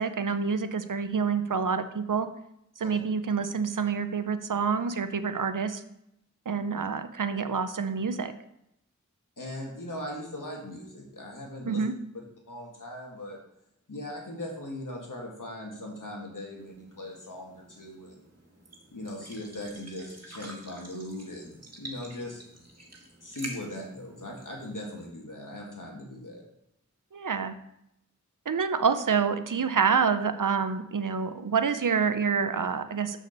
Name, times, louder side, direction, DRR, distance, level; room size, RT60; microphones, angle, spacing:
voice 1, 0.0-2.3 2.8-5.8 6.5-8.3 11.7-11.9 27.1-27.5 28.5-33.2, right 6 dB, 85° right, 11 dB, 0.6 m, -27 dB
voice 2, 9.4-11.8 12.5-13.4 13.9-18.2 18.9-22.4 23.2-26.4, left 1 dB, 85° left, -1 dB, 1.9 m, -39 dB
sound 1, 16.6-25.1, right 1 dB, 55° right, 1.8 m, -48 dB
6.7 x 5.0 x 6.6 m, 0.80 s
wide cardioid pair, 40°, 31 cm